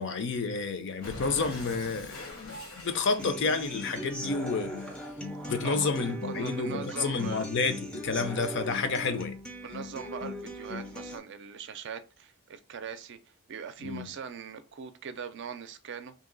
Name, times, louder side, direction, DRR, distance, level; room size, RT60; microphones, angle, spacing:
voice 1, 0.0-4.8 5.5-9.4 13.8-14.1, left 4 dB, 55° left, 0.5 m, -30 dB
Cat, 1.0-4.3, left 2 dB, 80° left, 1.1 m, -43 dB
Human voice / Acoustic guitar, 3.2-11.2, left 1 dB, 5° left, 0.4 m, -39 dB
voice 2, 6.2-7.4 9.6-13.2 13.5-16.1, right 6 dB, 55° right, 0.4 m, -40 dB
2.8 x 2.7 x 3.8 m
head